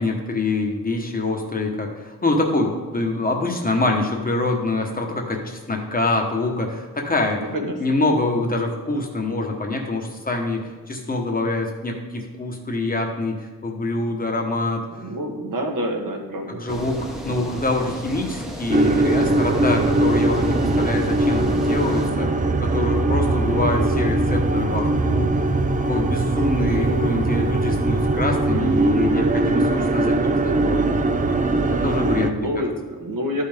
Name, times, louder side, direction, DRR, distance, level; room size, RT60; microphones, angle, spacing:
voice 1, 0.0-7.4 7.8-14.9 16.5-22.3 22.6-25.4 25.9-30.9 31.6-32.7, left 2 dB, 25° left, 2 dB, 1.1 m, -25 dB
voice 2, 7.3-8.0 14.1-14.2 14.9-17.0 32.3-33.4, equal, 70° right, 2 dB, 1.4 m, -28 dB
sound 1, 16.7-22.1, equal, ahead, 0.9 m, -34 dB
sound 2, 18.7-32.3, right 2 dB, 25° right, 0.4 m, -21 dB
12.5 x 5.5 x 3.6 m, 1.4 s
wide cardioid pair, 165°, 34 cm